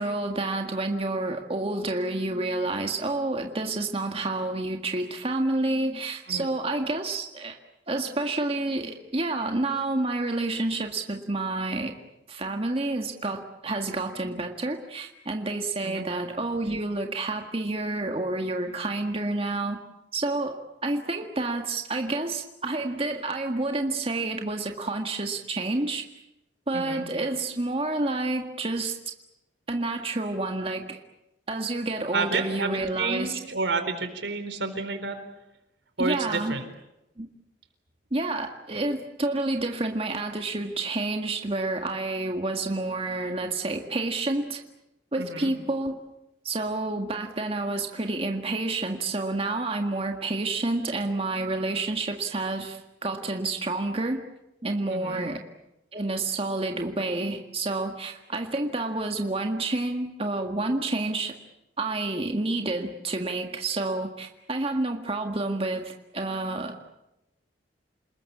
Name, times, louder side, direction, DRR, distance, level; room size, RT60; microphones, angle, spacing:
voice 1, 0.0-7.6 7.9-12.0 12.3-19.8 20.1-20.6 20.8-26.0 26.7-29.1 29.7-31.0 31.5-33.4 36.0-36.6 37.2-37.3 38.1-44.6 45.1-46.0 46.4-54.2 54.6-55.4 55.9-61.3 61.8-66.7, right 2 dB, 35° right, 4 dB, 1.8 m, -29 dB
voice 2, 26.7-27.0 32.1-35.2 36.0-36.6 45.2-45.5 54.9-55.2, right 4 dB, 90° right, 8 dB, 4.1 m, -30 dB
28.5 x 20.5 x 8.6 m, 0.90 s
head